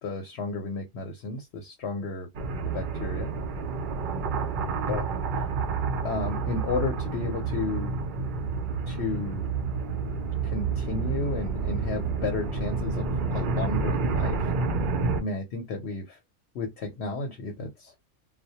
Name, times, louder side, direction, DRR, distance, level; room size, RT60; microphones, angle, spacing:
voice 1, 0.0-2.3 2.7-3.3 4.9-5.0 5.3-5.4 6.0-8.0 8.9-9.5 10.4-13.1 13.3-14.5 15.2-16.2 16.5-17.9, left 3 dB, 60° left, 0.8 m, -33 dB
sound 1, 2.3-15.2, right 4 dB, 70° right, 0.4 m, -29 dB
2.2 x 2.1 x 2.7 m
omnidirectional pair, 1.4 m